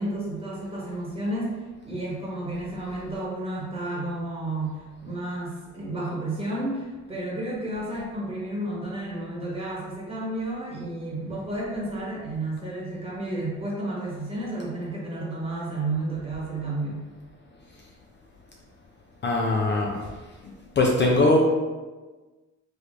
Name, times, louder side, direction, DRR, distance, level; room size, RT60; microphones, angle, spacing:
voice 1, 0.0-17.0, right 2 dB, 20° right, -6 dB, 1.2 m, -31 dB
voice 2, 19.2-20.0 20.8-21.4, left 2 dB, 35° left, -1 dB, 0.5 m, -21 dB
3.2 x 3.2 x 2.5 m, 1.3 s
cardioid pair, 90°, 30 cm